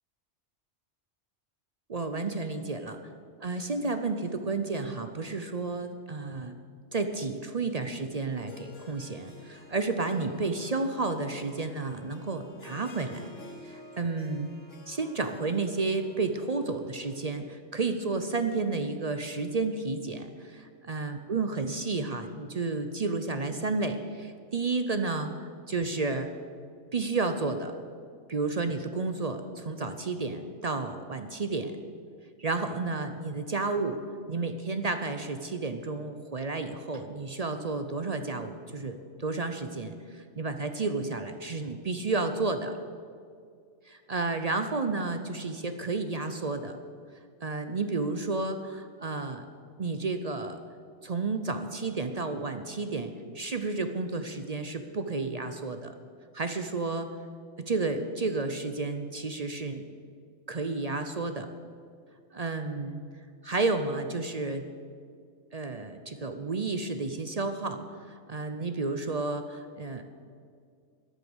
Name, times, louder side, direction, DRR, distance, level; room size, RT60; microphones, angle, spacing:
voice 1, 1.9-3.0 3.4-6.6 6.9-13.3 13.6-14.5 14.9-26.3 26.9-27.8 28.3-31.8 32.4-34.0 34.3-42.8 43.9-46.8 47.4-49.5 49.8-50.6 51.0-55.9 56.3-57.1 57.6-59.8 60.5-61.5 62.3-63.0 63.4-64.7 65.5-67.8 68.1-70.0, right 3 dB, 40° right, 8 dB, 0.6 m, -31 dB
Harp, 8.3-17.4, left 2 dB, 90° left, 1.7 m, -51 dB
13.0 x 9.9 x 7.1 m, 2.2 s
omnidirectional pair, 1.2 m